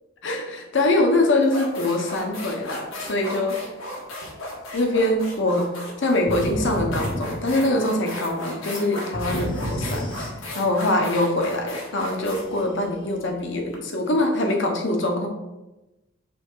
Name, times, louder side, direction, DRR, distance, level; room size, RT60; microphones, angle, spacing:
voice 1, 0.2-3.5 4.7-5.7 6.0-10.1 10.5-15.3, left 1 dB, 60° left, 3 dB, 1.1 m, -23 dB
sound 1, 0.8-1.0 1.4-13.8, left 1 dB, 80° left, 1.6 m, -36 dB
sound 2, 6.3-8.0 9.1-10.8, equal, 25° left, 0.8 m, -31 dB
6.2 x 3.6 x 5.5 m, 1.0 s
head